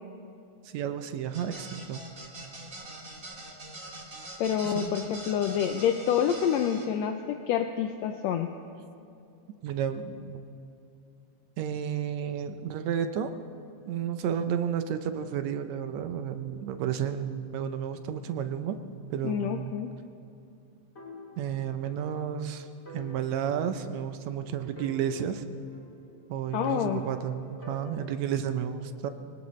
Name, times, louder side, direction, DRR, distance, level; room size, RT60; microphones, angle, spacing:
voice 1, 0.7-2.0 4.6-5.0 9.6-10.4 11.6-13.3 13.9-18.8 19.1-19.7 21.4-22.7 22.9-25.4 26.3-29.1, right 8 dB, 75° right, 9 dB, 1.9 m, -32 dB
sound 1, 1.3-6.8, right 2 dB, 30° right, 2.1 m, -43 dB
voice 2, 4.4-8.5 19.2-19.9 26.5-27.0, left 9 dB, 75° left, 6 dB, 1.7 m, -27 dB
sound 2, 21.0-22.1 22.4-22.5 22.9-24.4 24.8-26.2 26.7-28.5, left 1 dB, 20° left, 4.2 m, -47 dB
24.0 x 18.5 x 3.2 m, 2.6 s
omnidirectional pair, 3.3 m